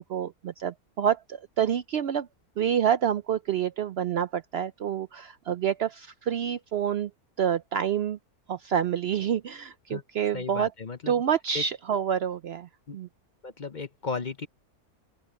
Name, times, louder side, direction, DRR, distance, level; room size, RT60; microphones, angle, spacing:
voice 1, 0.0-2.3 2.6-7.1 7.4-8.2 8.5-10.7 11.1-13.1, right 9 dB, 70° right, 0.6 m, -28 dB
voice 2, 10.3-11.2 11.5-11.6 12.9-13.0 13.4-14.5, left 4 dB, 40° left, 0.8 m, -35 dB
open air
omnidirectional pair, 1.6 m